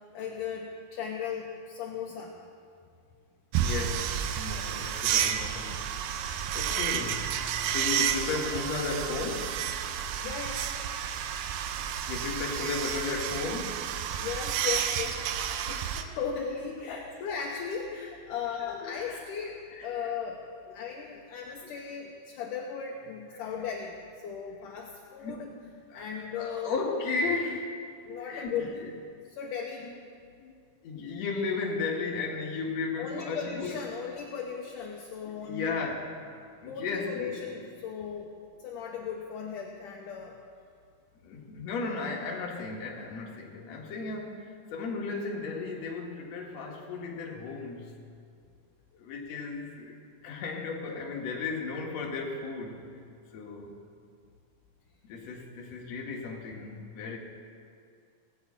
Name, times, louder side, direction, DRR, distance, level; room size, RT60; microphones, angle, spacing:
voice 1, 0.1-2.4 4.5-4.6 6.7-6.8 10.2-10.7 14.2-20.4 20.7-25.5 25.9-26.7 28.0-28.7 29.3-29.9 33.0-35.8 36.7-40.4, left 6 dB, 70° left, -1 dB, 2.2 m, -37 dB
sound 1, 3.5-16.0, right 9 dB, 90° right, 2.7 m, -31 dB
voice 2, 3.6-5.9 6.2-9.6 12.1-14.2 16.9-17.1 18.6-19.2 19.7-20.1 21.6-21.7 25.2-25.5 25.9-27.8 28.1-28.9 29.8-29.9 30.4-33.9 35.2-36.1 36.6-37.4 41.2-48.0 48.9-50.0 50.2-52.9 53.3-53.8 55.0-57.2, left 4 dB, 55° left, 0 dB, 2.3 m, -35 dB
17.5 x 7.1 x 8.5 m, 2.3 s
omnidirectional pair, 4.3 m